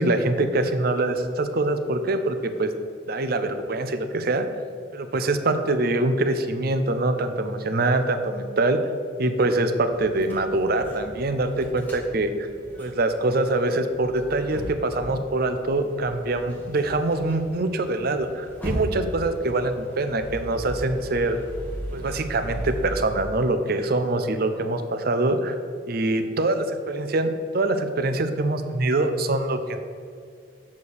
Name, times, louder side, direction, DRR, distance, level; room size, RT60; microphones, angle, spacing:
voice 1, 0.0-2.7 3.1-4.5 4.9-8.8 9.2-12.3 12.8-21.4 21.9-25.5 25.9-29.8, right 2 dB, 50° right, 8 dB, 0.6 m, -24 dB
sound 1, 9.9-23.1, equal, 10° left, 1.8 m, -37 dB
7.1 x 4.5 x 6.5 m, 2.2 s
head